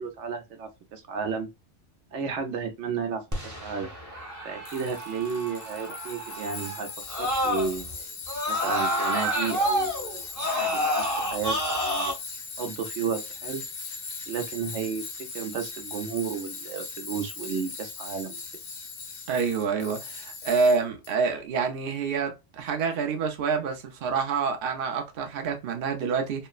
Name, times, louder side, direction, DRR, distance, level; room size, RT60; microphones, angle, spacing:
voice 1, 0.0-1.5 2.1-3.9 4.4-6.9 7.2-8.1 8.5-10.3 10.6-12.1 12.6-13.6 14.3-18.4, right 6 dB, 80° right, 1.0 m, -33 dB
Screaming, 3.3-7.9 8.3-12.1, equal, 20° right, 0.7 m, -29 dB
Tools, 4.6-21.1, left 4 dB, 70° left, 1.0 m, -39 dB
voice 2, 19.3-26.5, right 5 dB, 55° right, 0.7 m, -27 dB
3.0 x 2.0 x 2.3 m
omnidirectional pair, 1.2 m